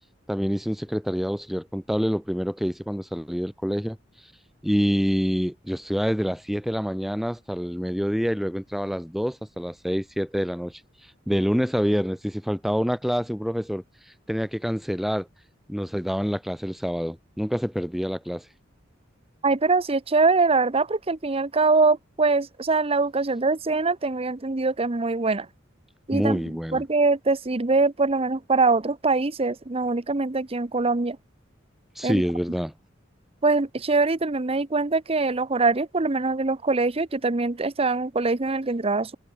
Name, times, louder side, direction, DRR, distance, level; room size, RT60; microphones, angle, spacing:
voice 1, 0.3-4.0 4.6-15.3 15.7-18.5 26.1-26.8 32.0-32.7, equal, ahead, 2.1 m, -27 dB
voice 2, 19.4-25.5 26.1-26.4 26.7-31.2 32.0-32.2 33.4-39.2, right 3 dB, 30° right, 0.9 m, -23 dB
head